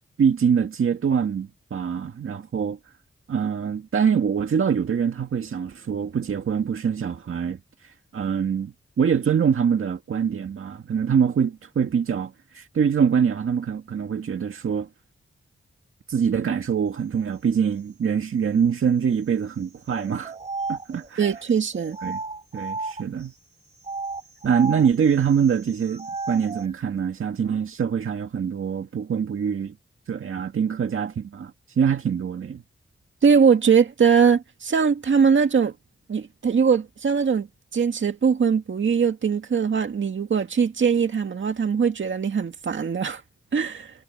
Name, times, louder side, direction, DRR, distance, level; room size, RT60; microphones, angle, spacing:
voice 1, 0.2-2.8 3.3-7.6 8.1-14.9 16.1-20.3 20.7-21.3 22.0-22.2 22.5-23.3 24.4-29.8 30.1-32.6, right 7 dB, 85° right, 2.0 m, -24 dB
sound 1, 19.9-23.3 23.8-26.7, right 3 dB, 30° right, 3.3 m, -34 dB
voice 2, 21.2-22.0 33.2-35.7 36.1-37.5 37.7-43.2 43.5-43.9, right 6 dB, 65° right, 2.2 m, -21 dB
wide cardioid pair, 135°, 21 cm